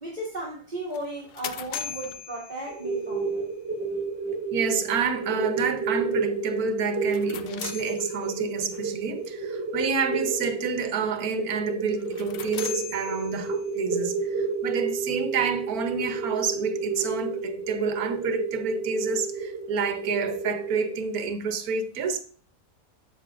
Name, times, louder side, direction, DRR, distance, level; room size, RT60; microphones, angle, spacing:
voice 1, 0.0-3.3, right 1 dB, 30° right, 1.9 m, -35 dB
sound 1, 0.9-3.2 7.0-8.6 12.0-13.8, left 9 dB, 80° left, 0.5 m, -39 dB
sound 2, 2.7-21.0, right 4 dB, 10° right, 3.7 m, -31 dB
voice 2, 4.5-22.2, right 5 dB, 85° right, 1.4 m, -29 dB
9.6 x 7.3 x 2.4 m
omnidirectional pair, 1.5 m